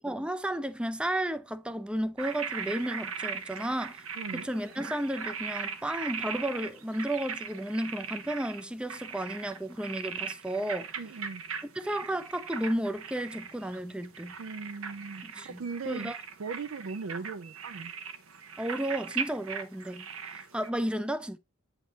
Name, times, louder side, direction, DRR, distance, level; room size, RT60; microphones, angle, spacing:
voice 1, 0.0-4.0 4.3-10.9 11.8-14.4 15.2-16.2 18.6-20.0 20.5-21.4, right 1 dB, 5° right, 0.4 m, -33 dB
sound 1, 2.2-20.7, right 6 dB, 85° right, 0.9 m, -39 dB
voice 2, 4.2-4.5 11.0-11.4 14.4-16.1 16.4-17.9, right 4 dB, 65° right, 0.4 m, -39 dB
8.4 x 3.7 x 4.0 m
head